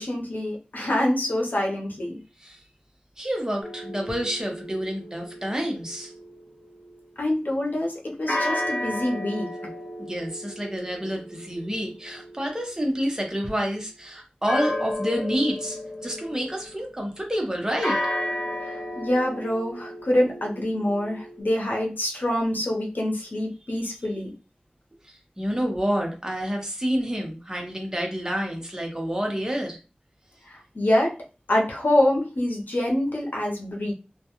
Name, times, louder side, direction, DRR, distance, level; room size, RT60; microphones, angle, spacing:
voice 1, 0.0-2.2 7.2-9.5 18.6-24.3 30.5-31.1 31.5-33.9, left 1 dB, 75° left, 0 dB, 0.7 m, -25 dB
voice 2, 3.2-6.1 10.0-18.0 25.1-29.8, equal, 20° right, 1 dB, 0.8 m, -28 dB
sound 1, 3.6-7.0 8.3-13.2 14.5-16.9 17.8-21.4, left 1 dB, 55° left, 1.2 m, -33 dB
2.2 x 2.2 x 2.9 m, 0.32 s
wide cardioid pair, 60°, 3 cm